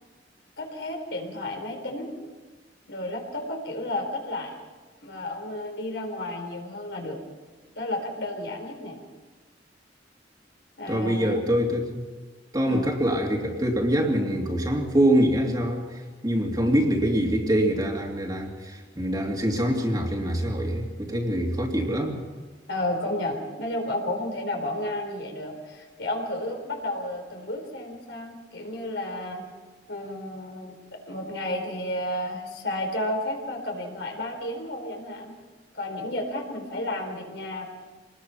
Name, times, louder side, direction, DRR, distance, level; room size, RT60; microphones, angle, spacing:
voice 1, 0.6-2.1 2.9-4.5 5.0-7.2 7.8-9.0 10.8-11.4 12.7-12.9 22.7-29.4 29.9-35.4 35.7-37.7, left 1 dB, 75° left, 2 dB, 4.3 m, -32 dB
voice 2, 10.9-12.0 12.5-22.2, equal, 20° right, 0 dB, 2.8 m, -24 dB
26.0 x 20.0 x 5.9 m, 1.3 s
head